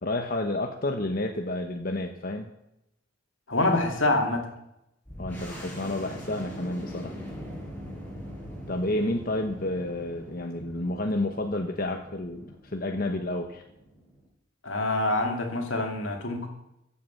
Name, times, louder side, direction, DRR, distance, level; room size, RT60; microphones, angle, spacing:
voice 1, 0.0-2.5 5.2-7.1 8.7-13.6, left 1 dB, 45° left, 4 dB, 1.0 m, -30 dB
voice 2, 3.5-4.5 14.6-16.5, left 2 dB, 75° left, 3 dB, 2.7 m, -26 dB
sound 1, 5.1-14.3, equal, 10° left, 5.1 m, -42 dB
15.0 x 8.6 x 7.0 m, 0.83 s
head